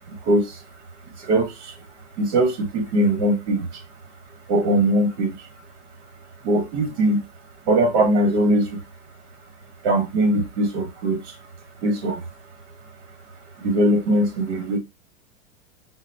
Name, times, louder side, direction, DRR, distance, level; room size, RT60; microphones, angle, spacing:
voice 1, 0.1-0.6 1.2-1.7 2.2-3.8 4.5-5.4 6.4-7.2 7.7-8.8 9.8-11.4 11.8-12.2 13.6-14.8, right 1 dB, 65° right, 1.3 m, -21 dB
3.9 x 2.1 x 2.6 m
supercardioid pair, 140°, 36 cm